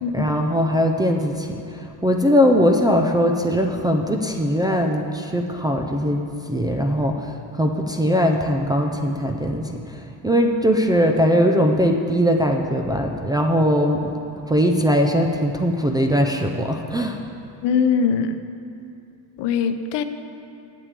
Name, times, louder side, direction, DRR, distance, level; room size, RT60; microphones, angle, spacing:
voice 1, 0.1-14.1 14.5-17.2, equal, 10° right, 0 dB, 0.4 m, -20 dB
voice 2, 17.6-18.4 19.4-20.0, left 6 dB, 70° left, 9 dB, 0.8 m, -21 dB
9.1 x 8.1 x 8.4 m, 2.6 s
cardioid pair, 170°, 43 cm